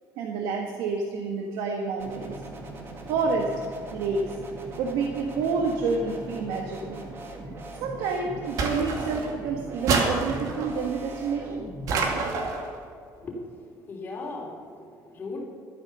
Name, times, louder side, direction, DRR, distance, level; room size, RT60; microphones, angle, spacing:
voice 1, 0.2-2.4 3.1-3.5 3.9-4.3 4.8-7.1 7.8-11.6, right 4 dB, 80° right, 2 dB, 1.5 m, -28 dB
sound 1, 2.0-12.3, right 1 dB, 30° right, 2.0 m, -40 dB
sound 2, 8.6-9.4 9.9-10.7 11.9-12.7, right 4 dB, 50° right, 2.2 m, -27 dB
voice 2, 13.1-15.4, left 2 dB, 25° left, -4 dB, 3.4 m, -38 dB
12.5 x 9.9 x 6.7 m, 2.4 s
cardioid pair, 150°, 7 cm